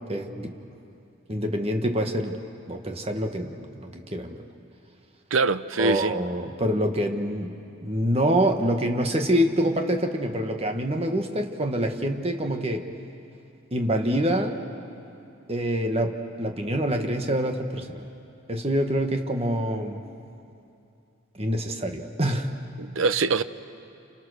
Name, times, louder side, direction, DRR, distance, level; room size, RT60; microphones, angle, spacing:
voice 1, 0.1-0.5 1.3-2.4 2.7-4.4 5.8-7.5 7.8-12.9 13.7-14.6 15.5-18.1 18.5-20.0 21.3-22.5, equal, 30° right, 1.5 m, -26 dB
voice 2, 5.3-6.1 22.8-23.4, right 4 dB, 70° right, 0.7 m, -23 dB
29.5 x 28.5 x 6.5 m
head